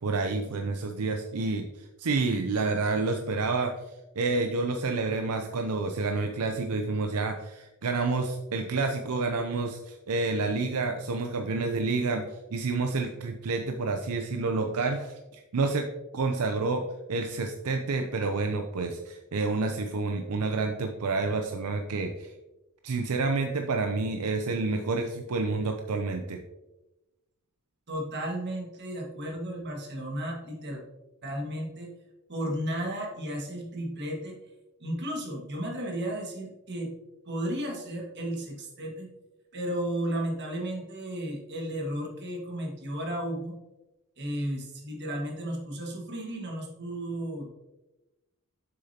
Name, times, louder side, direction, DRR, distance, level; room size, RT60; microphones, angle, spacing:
voice 1, 0.0-3.7 4.2-15.9 16.1-16.8 17.1-22.3 22.8-26.4, right 3 dB, 80° right, 5 dB, 0.6 m, -29 dB
voice 2, 27.9-30.8 31.2-31.9 32.3-34.4 34.8-36.9 37.2-39.1 39.5-43.5 44.2-47.5, right 1 dB, 50° right, 0 dB, 1.7 m, -34 dB
7.6 x 6.5 x 2.8 m, 1.0 s
head